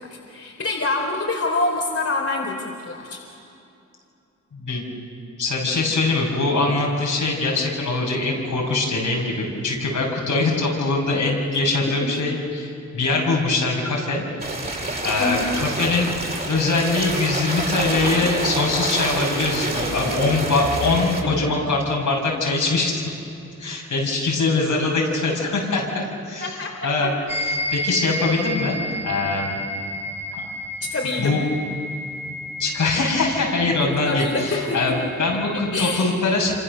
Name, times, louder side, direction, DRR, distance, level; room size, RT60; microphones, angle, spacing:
voice 1, 0.0-3.2 15.2-15.5 21.2-21.3 26.4-27.1 30.9-31.4 34.0-35.0 35.7-36.0, left 2 dB, 50° left, 0 dB, 4.1 m, -26 dB
voice 2, 4.5-4.9 5.4-14.2 15.0-23.0 23.6-27.1 27.4-28.8 29.0-29.6 30.3-30.4 31.2-31.4 32.6-36.5, left 3 dB, 80° left, -2 dB, 6.8 m, -23 dB
sound 1, 14.4-21.2, right 2 dB, 30° right, 5.5 m, -27 dB
sound 2, 27.3-36.0, left 1 dB, 20° left, 4.0 m, -32 dB
27.0 x 26.0 x 6.9 m, 2.6 s
cardioid pair, 55°, 30 cm